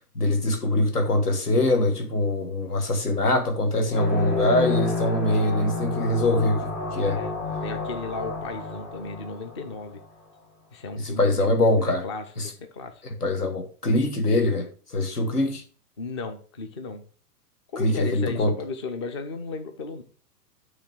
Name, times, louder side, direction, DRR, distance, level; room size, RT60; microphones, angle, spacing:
voice 1, 0.1-7.2 11.0-12.0 12.4-12.5 13.2-15.6 17.8-18.6, left 1 dB, 70° left, 1.6 m, -23 dB
sound 1, 3.9-10.0, left 3 dB, 50° left, 2.3 m, -30 dB
voice 2, 7.0-7.3 7.6-10.0 10.7-11.6 11.8-13.0 16.0-17.0 17.7-20.0, left 4 dB, 20° left, 0.4 m, -35 dB
8.5 x 3.2 x 6.1 m
figure-of-eight pair, 110°, 48 cm